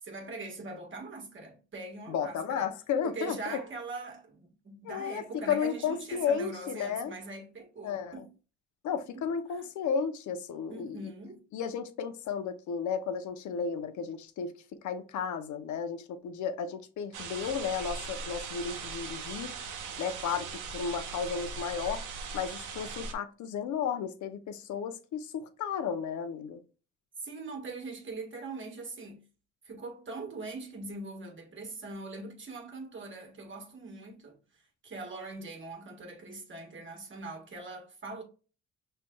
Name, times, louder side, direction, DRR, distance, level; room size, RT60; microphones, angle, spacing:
voice 1, 0.0-2.7 3.0-8.3 8.9-9.6 10.7-11.4 27.2-29.3 29.6-38.2, right 3 dB, 40° right, 1.5 m, -42 dB
voice 2, 2.1-3.6 4.8-7.2 7.8-8.2 8.8-11.1 11.5-19.5 20.0-22.0 22.3-26.6, left 7 dB, 75° left, 0.7 m, -33 dB
sound 1, 17.1-23.1, right 5 dB, 90° right, 1.0 m, -40 dB
6.1 x 3.3 x 2.2 m
cardioid pair, 90°, 30 cm